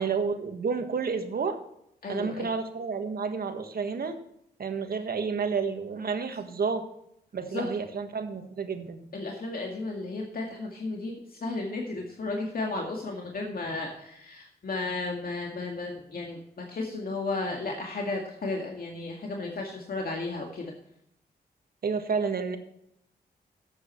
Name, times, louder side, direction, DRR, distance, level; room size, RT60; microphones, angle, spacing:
voice 1, 0.0-1.6 2.1-4.2 4.6-6.8 7.3-9.0 21.8-22.6, right 5 dB, 65° right, 7 dB, 1.6 m, -30 dB
voice 2, 2.0-2.5 7.5-7.6 9.1-11.1 11.4-20.6, left 3 dB, 60° left, 0 dB, 2.1 m, -34 dB
12.0 x 8.6 x 4.5 m, 0.77 s
cardioid pair, 85°, 17 cm